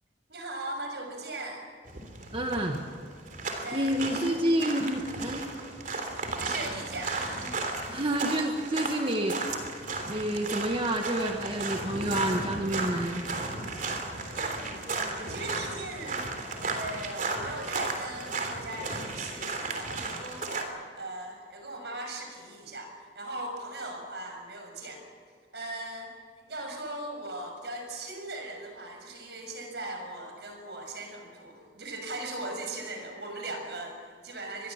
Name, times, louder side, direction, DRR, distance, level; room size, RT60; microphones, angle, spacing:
voice 1, 0.3-1.7 3.6-4.8 6.4-7.6 14.3-14.8 15.3-16.2 16.6-25.0 25.5-26.1 26.5-34.7, right 2 dB, 70° right, 4 dB, 6.4 m, -39 dB
sound 1, 1.9-20.6, right 3 dB, 50° right, 3.3 m, -34 dB
voice 2, 2.3-2.8 3.7-5.5 7.9-9.4 10.1-13.2, right 1 dB, 30° right, 3 dB, 1.6 m, -29 dB
25.5 x 21.0 x 7.4 m, 2.2 s
head